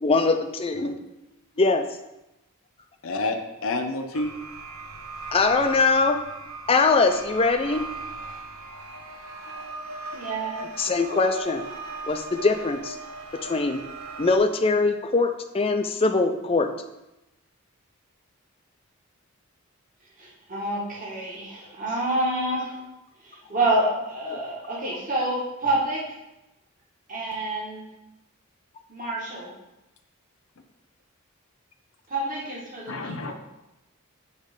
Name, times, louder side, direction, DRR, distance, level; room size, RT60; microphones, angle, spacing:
voice 1, 0.0-0.9 1.6-1.8 5.3-6.2 6.7-7.8 10.8-11.6 12.1-13.0 13.4-13.8 14.2-16.7 24.3-24.4, left 3 dB, 25° left, 6 dB, 0.4 m, -22 dB
voice 2, 3.0-4.3 32.9-33.3, left 2 dB, 65° left, 5 dB, 0.6 m, -29 dB
sound 1, 4.1-14.4, right 3 dB, 85° right, 0.7 m, -38 dB
voice 3, 10.1-10.6 20.2-22.8 23.2-26.0 27.1-27.8 28.9-29.5 32.1-33.3, right 1 dB, 40° right, -5 dB, 1.5 m, -28 dB
8.0 x 3.2 x 5.1 m, 0.96 s
head